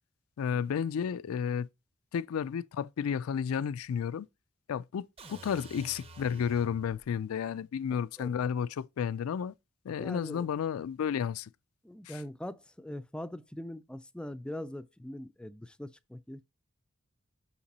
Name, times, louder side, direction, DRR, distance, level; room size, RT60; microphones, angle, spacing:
voice 1, 0.4-1.7 2.1-4.3 4.7-9.5 9.9-11.5 12.1-12.2, left 7 dB, 90° left, 0.3 m, -32 dB
sound 1, 5.2-7.1, right 2 dB, 30° right, 0.7 m, -50 dB
voice 2, 10.0-10.5 11.8-16.5, left 1 dB, 5° left, 0.3 m, -42 dB
6.6 x 5.8 x 4.0 m
head